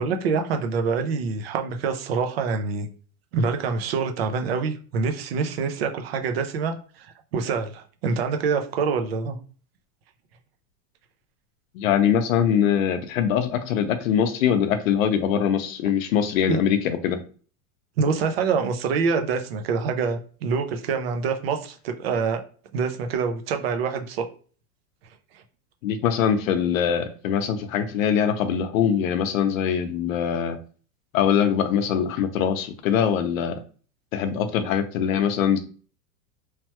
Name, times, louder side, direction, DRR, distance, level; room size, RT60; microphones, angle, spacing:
voice 1, 0.0-2.9 3.3-9.4 16.5-16.6 18.0-22.4 22.7-24.2, right 5 dB, 45° right, 6 dB, 0.4 m, -26 dB
voice 2, 11.7-17.2 25.8-30.6 31.1-33.6 34.1-35.6, left 8 dB, 60° left, 9 dB, 0.6 m, -23 dB
3.1 x 2.2 x 2.8 m, 0.40 s
supercardioid pair, 175°, 46 cm